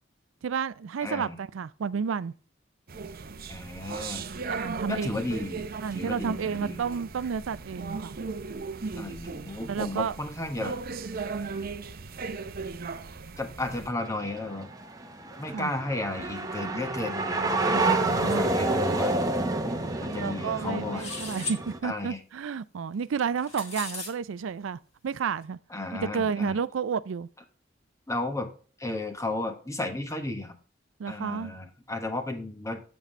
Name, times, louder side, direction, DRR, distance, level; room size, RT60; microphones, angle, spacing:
voice 1, 0.4-2.3 4.5-5.1 5.8-8.2 9.7-10.1 15.5-15.7 17.7-18.5 20.2-25.6 25.9-27.3 31.0-31.5, right 6 dB, 85° right, 0.4 m, -31 dB
voice 2, 1.0-1.4 3.5-4.3 4.9-5.7 5.9-6.9 9.0-10.8 13.4-14.7 15.4-19.1 20.0-21.1 21.8-22.2 25.7-26.6 28.1-28.5 28.8-30.6 31.1-32.8, left 2 dB, 15° left, 1.3 m, -34 dB
sound 1, 2.9-13.9, right 4 dB, 50° right, 0.7 m, -37 dB
sound 2, 14.0-21.8, right 2 dB, 20° right, 1.0 m, -29 dB
sound 3, 21.0-21.6 23.2-24.1, left 3 dB, 35° left, 2.2 m, -36 dB
8.2 x 7.3 x 3.2 m
head